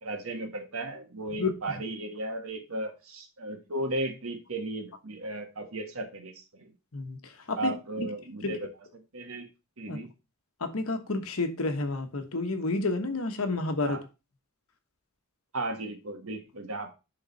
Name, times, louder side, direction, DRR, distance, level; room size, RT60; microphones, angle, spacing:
voice 1, 0.0-6.7 7.5-8.7 9.1-9.5 9.8-10.1 13.8-14.0 15.5-16.9, right 2 dB, 75° right, 1.6 m, -35 dB
voice 2, 10.6-14.0, left 3 dB, 75° left, 1.2 m, -30 dB
10.5 x 3.9 x 4.1 m
head